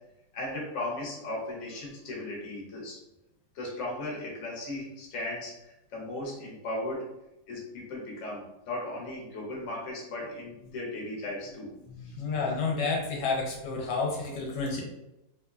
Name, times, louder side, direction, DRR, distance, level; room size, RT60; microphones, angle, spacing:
voice 1, 0.3-3.0 3.5-7.1 7.5-11.7 12.0-12.2, left 2 dB, 55° left, -3 dB, 0.9 m, -36 dB
voice 2, 11.8-14.8, left 4 dB, 75° left, -1 dB, 1.1 m, -30 dB
3.0 x 2.1 x 2.3 m, 0.91 s
omnidirectional pair, 1.9 m